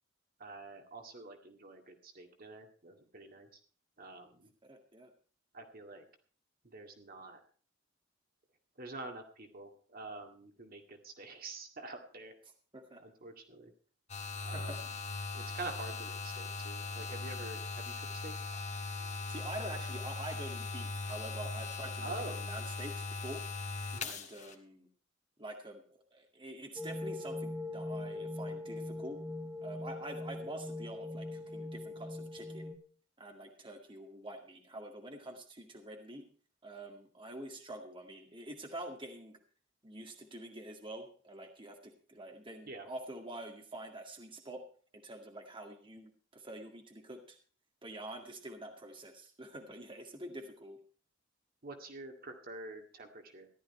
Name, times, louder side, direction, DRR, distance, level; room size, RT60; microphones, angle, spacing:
voice 1, 0.4-3.6 4.0-4.5 5.5-6.1 6.6-7.4 8.8-12.3 13.0-13.7 14.4-14.9 15.3-18.3 22.0-22.5 23.9-24.1 42.7-42.9 51.6-53.5, right 2 dB, 50° right, 4 dB, 2.1 m, -47 dB
voice 2, 4.6-5.1 12.7-13.0 14.4-14.8 19.3-22.1 22.4-23.4 24.0-24.9 25.4-25.8 26.1-29.2 29.6-32.7 33.2-36.3 36.6-39.4 39.8-44.6 44.9-47.4 47.8-50.8, right 1 dB, 25° right, 3 dB, 2.0 m, -46 dB
sound 1, 14.1-24.5, left 3 dB, 40° left, 1.8 m, -40 dB
sound 2, 26.8-32.7, left 2 dB, ahead, 1.3 m, -41 dB
14.5 x 12.0 x 4.3 m, 0.42 s
head